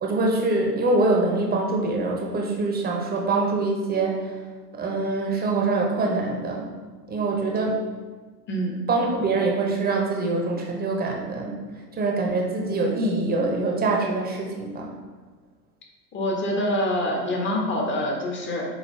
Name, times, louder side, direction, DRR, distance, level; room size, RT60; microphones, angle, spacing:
voice 1, 0.0-4.3 4.7-6.7 7.1-7.7 8.9-11.6 12.0-14.9, right 3 dB, 20° right, 0 dB, 1.0 m, -24 dB
voice 2, 8.5-8.8 16.1-18.7, left 1 dB, 25° left, 0 dB, 1.3 m, -25 dB
6.4 x 4.4 x 3.3 m, 1.4 s
figure-of-eight pair, 85°, 50 cm